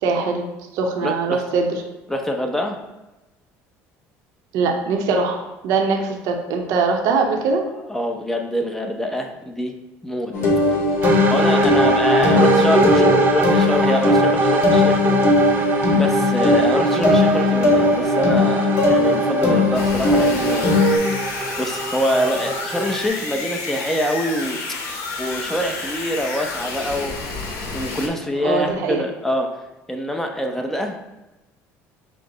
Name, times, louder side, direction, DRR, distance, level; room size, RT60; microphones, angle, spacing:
voice 1, 0.0-0.5 0.7-1.7 4.5-7.6 12.3-13.1 16.9-17.1 28.3-29.1, right 4 dB, 70° right, 2 dB, 0.7 m, -22 dB
voice 2, 1.0-1.4 2.1-2.8 7.9-9.7 10.0-10.3 11.1-15.6 15.9-20.7 21.6-24.6 25.2-27.2 27.7-29.5 29.9-31.0, equal, 5° left, 3 dB, 0.6 m, -25 dB
sound 1, 10.3-21.0, left 2 dB, 50° left, 1.2 m, -18 dB
sound 2, 11.0-23.1, right 2 dB, 35° right, 0.7 m, -23 dB
sound 3, 19.7-28.1, left 3 dB, 70° left, 0.8 m, -30 dB
5.5 x 2.0 x 3.8 m, 1.0 s
supercardioid pair, 105°, 6 cm